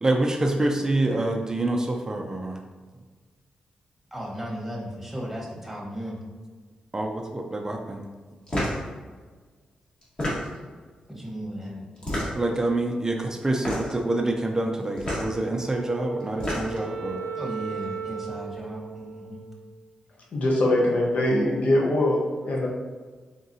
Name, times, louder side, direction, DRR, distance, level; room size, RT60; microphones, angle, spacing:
voice 1, 0.0-2.6 6.9-8.1 12.3-17.3, right 2 dB, 25° right, 3 dB, 0.4 m, -26 dB
voice 2, 4.1-6.2 11.1-11.8 17.3-19.4, equal, 5° right, -3 dB, 1.1 m, -35 dB
sound 1, 8.5-8.8 10.0-10.7 12.0-12.6 13.5-14.0 15.0-15.3 16.2-16.9, equal, 40° left, 1.4 m, -29 dB
Wind instrument woodwind instrument, 15.5-20.0, right 6 dB, 90° right, 0.4 m, -37 dB
voice 3, 20.3-22.7, left 1 dB, 65° left, -2 dB, 0.8 m, -22 dB
4.0 x 3.6 x 2.6 m, 1.4 s
cardioid pair, 85°, 3 cm